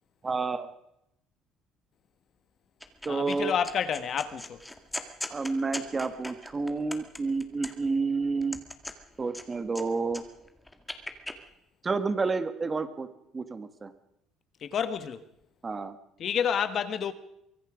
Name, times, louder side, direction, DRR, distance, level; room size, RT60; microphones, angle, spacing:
voice 1, 0.2-0.7 3.0-3.5 5.3-8.6 9.2-10.2 11.8-13.1 13.3-13.9 15.6-16.0, right 4 dB, 20° right, 1.5 m, -30 dB
sound 1, 2.8-3.4 3.6-8.0 8.4-9.8 10.1-11.4, left 1 dB, 5° left, 1.9 m, -39 dB
voice 2, 3.1-4.6 14.6-15.2 16.2-17.1, left 8 dB, 40° left, 1.4 m, -29 dB
24.0 x 23.0 x 5.0 m
cardioid pair, 160°, 0 cm